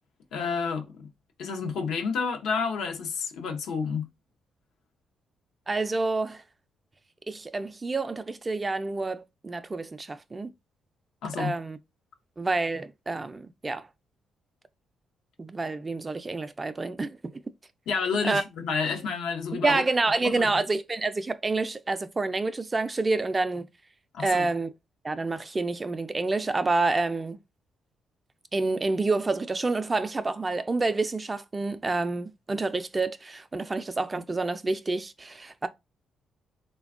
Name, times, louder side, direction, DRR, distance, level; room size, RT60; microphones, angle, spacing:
voice 1, 0.3-1.1 1.4-4.1 11.2-11.6 17.9-19.8 20.2-20.5 24.1-24.4, left 5 dB, 85° left, 0.6 m, -30 dB
voice 2, 5.7-6.4 7.3-10.5 11.4-11.8 12.4-13.9 15.4-17.2 18.2-18.4 19.6-23.7 24.2-24.7 25.0-27.4 28.5-35.7, right 3 dB, 25° right, 0.3 m, -28 dB
3.3 x 2.2 x 2.4 m
cardioid pair, 70°, 0 cm